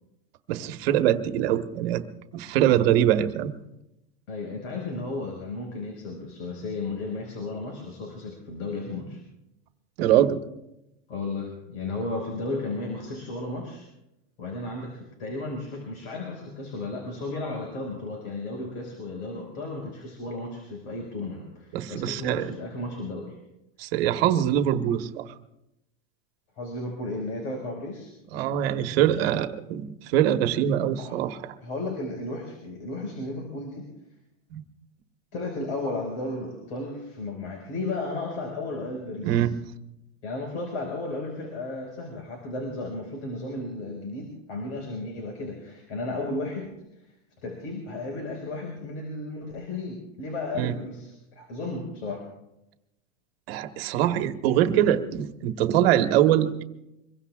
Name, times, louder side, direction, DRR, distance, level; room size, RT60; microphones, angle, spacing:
voice 1, 0.5-2.0 2.3-3.5 10.0-10.4 21.7-22.5 23.8-25.3 28.3-31.5 34.5-34.6 39.2-39.6 50.5-50.7 53.5-56.6, right 11 dB, 50° right, 7 dB, 1.4 m, -23 dB
voice 2, 4.3-9.2 11.1-13.9 14.4-23.4 26.6-28.1 31.0-31.2 31.6-33.9 35.3-39.5 40.2-46.8 47.4-52.3, left 2 dB, 60° left, 1 dB, 5.3 m, -34 dB
25.5 x 22.5 x 2.5 m, 0.88 s
supercardioid pair, 165°, 37 cm